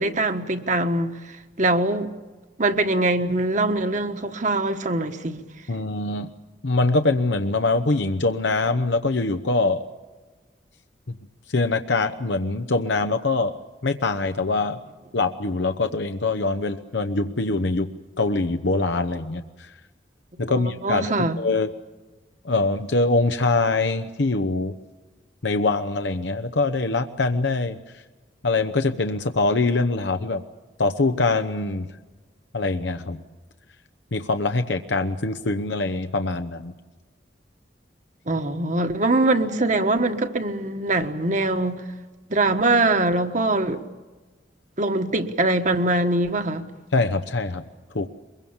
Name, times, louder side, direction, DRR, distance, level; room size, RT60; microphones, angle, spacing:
voice 1, 0.0-2.1 2.6-5.4 20.5-21.4 38.3-41.8 42.3-43.8 44.8-46.7, right 2 dB, 40° right, 1.4 m, -23 dB
voice 2, 5.7-6.3 6.6-9.8 11.1-11.2 11.5-13.5 13.8-14.8 15.1-17.9 18.2-19.7 20.4-21.7 22.4-24.7 25.4-27.8 28.4-30.4 30.8-31.9 32.5-33.2 34.1-36.7 46.9-47.6 47.9-48.1, left 3 dB, 75° left, 0.9 m, -23 dB
23.0 x 22.5 x 7.2 m
head